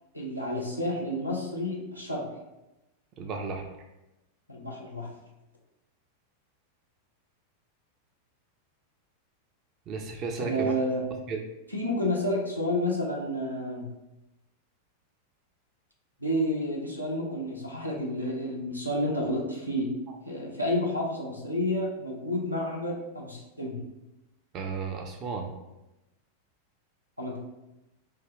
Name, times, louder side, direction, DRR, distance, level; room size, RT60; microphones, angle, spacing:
voice 1, 0.1-2.2 4.5-5.1 10.4-11.0 11.7-13.9 16.2-19.9 20.2-23.8 27.2-27.4, left 1 dB, 90° right, -1 dB, 0.6 m, -30 dB
voice 2, 3.2-3.7 9.9-10.7 11.3-11.4 24.5-25.5, right 4 dB, 35° right, 3 dB, 0.4 m, -33 dB
3.3 x 2.1 x 3.5 m, 0.97 s
figure-of-eight pair, 90°, 0 cm